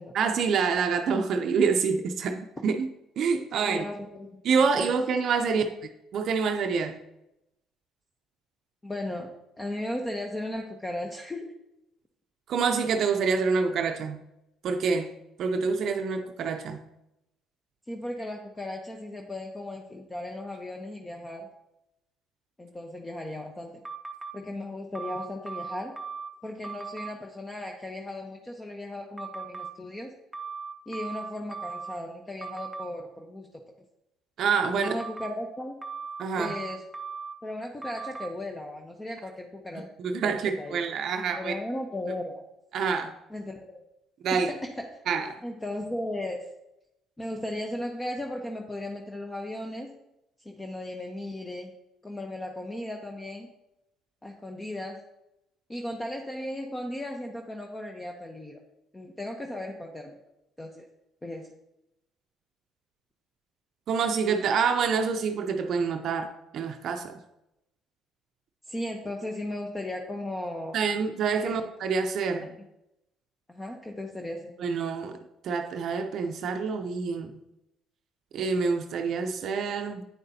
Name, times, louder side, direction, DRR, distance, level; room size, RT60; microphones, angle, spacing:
voice 1, 0.1-2.9 3.2-3.8 4.4-5.6 6.1-7.0 12.5-14.2 14.6-15.1 15.4-16.8 34.4-34.9 36.2-36.5 40.0-41.5 42.7-43.1 44.2-44.5 45.1-45.4 63.9-67.2 70.7-72.5 74.6-75.2 75.4-77.4 78.3-80.0, right 5 dB, 60° right, 6 dB, 0.6 m, -27 dB
voice 2, 3.7-4.3 4.7-4.9 5.5-5.6 8.8-11.6 17.9-21.5 22.6-23.8 24.3-25.9 26.4-30.1 30.9-33.5 34.7-35.8 36.4-36.8 37.4-39.9 40.2-40.8 41.4-42.4 43.3-43.8 44.3-44.8 45.4-46.4 47.2-50.0 50.4-51.7 52.0-53.5 54.2-55.0 55.7-58.6 58.9-60.2 60.6-60.9 61.2-61.5 68.7-70.8 71.4-71.5 72.4-72.5 73.5-74.5, left 1 dB, 15° left, 2 dB, 0.8 m, -36 dB
sound 1, 23.8-24.3 24.9-26.3 26.6-27.1 29.2-29.7 30.3-32.0 32.4-32.9 34.8-35.3 35.8-37.3 37.8-38.3, right 5 dB, 15° right, 0.7 m, -38 dB
8.5 x 6.6 x 2.8 m, 0.87 s
supercardioid pair, 70°, 0 cm